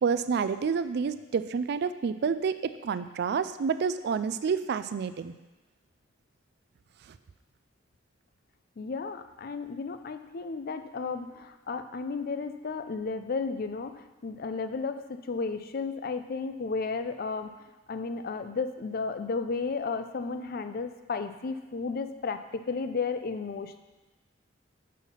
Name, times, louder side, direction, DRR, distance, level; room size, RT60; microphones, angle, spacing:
voice 1, 0.0-5.3, right 6 dB, 60° right, 12 dB, 0.3 m, -29 dB
voice 2, 8.8-17.5 17.9-23.8, left 4 dB, 50° left, 9 dB, 0.5 m, -33 dB
6.3 x 5.7 x 5.5 m, 1.1 s
head